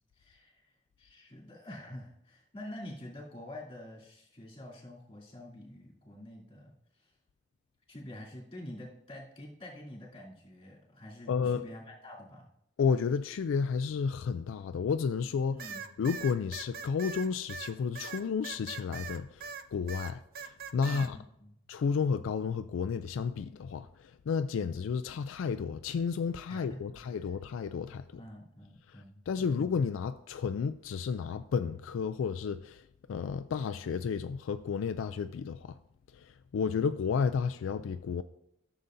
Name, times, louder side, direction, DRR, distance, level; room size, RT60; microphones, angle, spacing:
voice 1, 0.1-0.7 1.0-7.1 7.9-12.5 15.5-15.9 20.8-21.5 26.5-27.3 28.2-29.6, left 1 dB, 30° left, 2.8 m, -47 dB
voice 2, 11.3-11.6 12.8-15.6 16.0-21.2 21.7-28.0 28.9-32.8 33.1-35.8 36.1-38.2, left 6 dB, 75° left, 0.3 m, -32 dB
sound 1, 15.6-19.6 19.9-21.1, right 6 dB, 50° right, 0.5 m, -41 dB
13.5 x 6.9 x 2.6 m
head